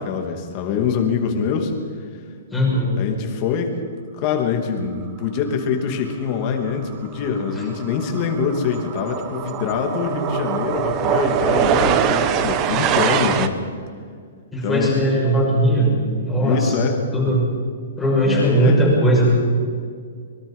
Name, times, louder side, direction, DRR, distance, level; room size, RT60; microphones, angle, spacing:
voice 1, 0.0-1.7 3.0-3.8 4.2-13.6 14.6-15.0 16.4-17.0 18.2-18.8, left 6 dB, 25° left, 3 dB, 2.8 m, -24 dB
voice 2, 2.5-2.9 14.5-15.9 16.2-16.7 17.1-17.4 18.0-19.3, right 1 dB, 5° left, -6 dB, 6.4 m, -18 dB
sound 1, 6.7-6.9 7.2-13.5, right 8 dB, 20° right, 1.0 m, -22 dB
24.5 x 23.0 x 5.7 m, 2.1 s
hypercardioid pair, 170°, 0 cm